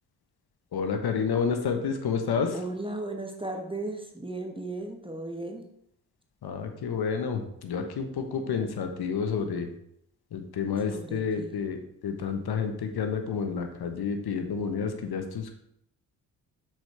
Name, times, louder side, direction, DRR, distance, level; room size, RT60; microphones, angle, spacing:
voice 1, 0.7-2.6 6.4-9.7 10.3-11.8 12.0-15.5, left 6 dB, 55° left, 6 dB, 1.2 m, -29 dB
voice 2, 2.5-5.7 10.9-11.5, right 2 dB, 10° right, 3 dB, 1.2 m, -36 dB
6.1 x 5.1 x 4.3 m, 0.75 s
hypercardioid pair, 40°, 47 cm